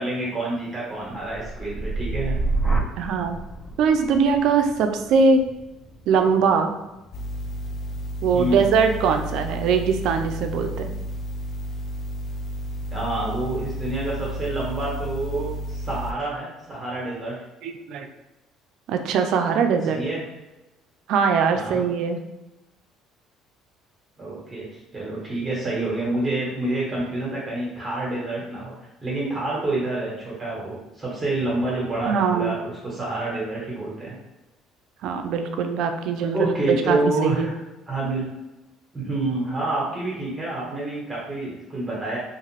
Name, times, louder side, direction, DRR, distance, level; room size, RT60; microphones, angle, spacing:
voice 1, 0.0-2.4 8.3-8.6 12.9-17.3 19.9-20.2 21.5-21.8 24.2-24.6 24.9-28.7 29.0-34.1 36.3-37.5 37.9-38.2 38.9-42.2, right 2 dB, 25° right, -6 dB, 1.2 m, -27 dB
sound 1, 1.1-9.1 9.5-10.0, right 3 dB, 30° left, 1.3 m, -31 dB
voice 2, 3.0-3.4 3.8-5.4 6.1-6.7 8.2-10.9 17.6-18.1 18.9-20.0 21.1-22.2 32.1-32.6 35.0-37.5, right 5 dB, 70° right, 6 dB, 0.3 m, -21 dB
sound 2, 7.1-16.1, equal, 45° left, 0.3 m, -32 dB
2.5 x 2.3 x 3.3 m, 1.0 s
supercardioid pair, 80°, 0 cm